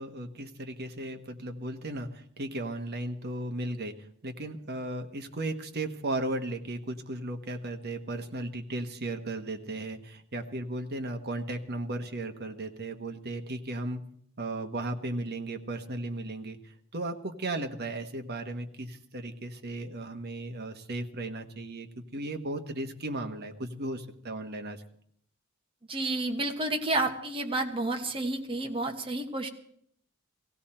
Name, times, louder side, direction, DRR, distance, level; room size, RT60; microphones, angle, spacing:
voice 1, 0.0-3.9 4.2-14.0 14.4-24.8, right 2 dB, 55° right, 6 dB, 1.3 m, -36 dB
voice 2, 25.9-29.5, right 2 dB, 25° right, 4 dB, 1.3 m, -30 dB
17.0 x 16.5 x 4.4 m, 0.66 s
head